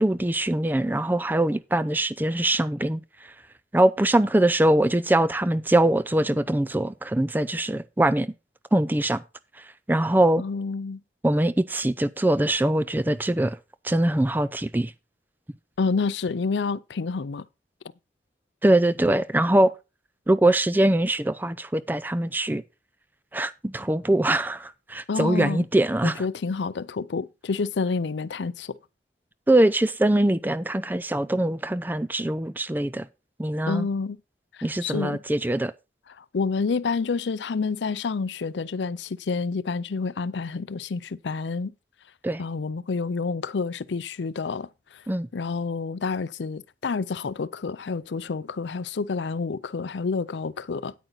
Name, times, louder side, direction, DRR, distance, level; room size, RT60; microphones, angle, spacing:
voice 1, 0.0-3.0 3.7-8.3 8.7-9.2 9.9-10.4 11.2-13.6 13.8-14.9 18.6-19.7 20.3-22.6 23.3-26.2 29.5-33.1 33.4-33.9 34.6-35.7 42.2-42.4 45.1-45.3, right 1 dB, 10° right, 0.4 m, -22 dB
voice 2, 10.4-11.0 15.8-17.5 25.1-25.6 26.0-28.8 33.7-34.2 34.5-35.2 36.2-41.7 42.4-45.0 45.3-50.9, left 4 dB, 85° left, 0.5 m, -29 dB
9.2 x 8.9 x 3.9 m
head